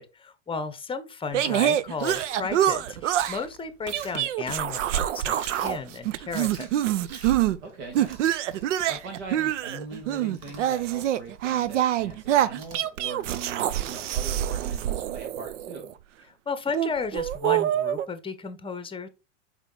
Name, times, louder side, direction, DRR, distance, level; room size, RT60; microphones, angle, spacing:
voice 1, 0.0-6.7 16.5-19.1, left 5 dB, 15° left, 0.8 m, -34 dB
sound 1, 1.3-3.4 3.9-5.8 6.0-7.6 7.9-15.9 16.7-18.1, right 12 dB, 85° right, 0.6 m, -26 dB
Chewing mastication, 2.0-15.0, right 5 dB, 50° right, 1.7 m, -48 dB
voice 2, 7.6-8.2 8.9-15.9, right 4 dB, 65° right, 1.9 m, -41 dB
5.5 x 4.7 x 3.8 m
hypercardioid pair, 110°, 35 cm